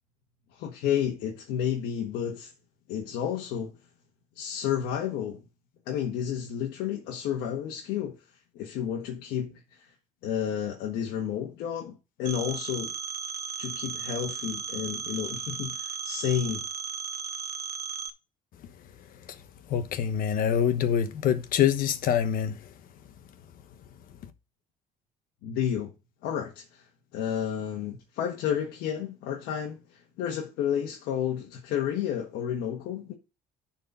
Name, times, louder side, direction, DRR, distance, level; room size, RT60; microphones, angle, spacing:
voice 1, 0.5-2.5 2.9-3.8 4.3-5.4 5.9-8.2 8.5-9.9 10.2-12.9 13.6-16.6 25.4-25.9 26.2-26.8 27.1-33.1, left 9 dB, 90° left, 1.6 m, -31 dB
Telephone, 12.3-18.1, right 6 dB, 75° right, 1.1 m, -35 dB
voice 2, 19.7-22.6, left 9 dB, 65° left, 1.2 m, -25 dB
11.0 x 4.4 x 5.6 m
cardioid pair, 105°, 16 cm